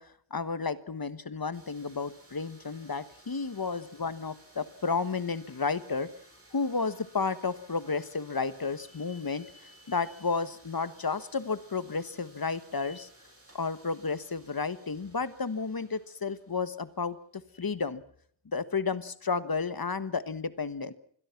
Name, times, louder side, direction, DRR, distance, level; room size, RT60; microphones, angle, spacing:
voice 1, 0.0-6.1 6.5-13.1 13.5-18.0 18.5-20.9, left 4 dB, 50° left, 13 dB, 1.3 m, -32 dB
sound 1, 1.5-17.2, right 1 dB, 30° right, 7.2 m, -58 dB
27.0 x 21.5 x 5.9 m, 0.63 s
wide cardioid pair, 75°, 46 cm